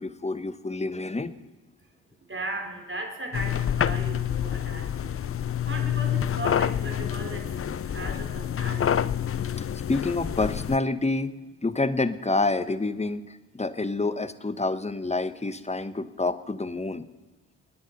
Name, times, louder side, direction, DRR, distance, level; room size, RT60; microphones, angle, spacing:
voice 1, 0.0-1.3 9.6-11.3 11.6-17.1, left 3 dB, 15° left, 12 dB, 1.2 m, -28 dB
voice 2, 2.2-5.2 5.6-7.5 7.8-9.1, right 2 dB, 25° right, 3 dB, 4.7 m, -37 dB
sound 1, 3.3-10.8, left 9 dB, 30° left, 0.6 m, -27 dB
26.0 x 9.9 x 5.5 m, 1.2 s
hypercardioid pair, 45°, 46 cm